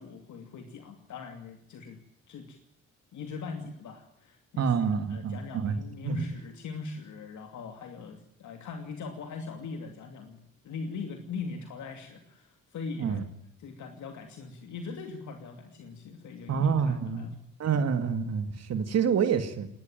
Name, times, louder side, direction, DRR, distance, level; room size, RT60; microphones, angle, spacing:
voice 1, 0.0-2.0 2.3-2.6 3.1-10.4 10.6-13.2 13.6-17.4, left 4 dB, 70° left, 5 dB, 2.8 m, -41 dB
voice 2, 4.6-5.8 6.0-6.3 13.0-13.2 16.5-19.7, right 6 dB, 55° right, 9 dB, 2.2 m, -27 dB
19.5 x 19.5 x 9.1 m, 0.75 s
cardioid pair, 90°, 30 cm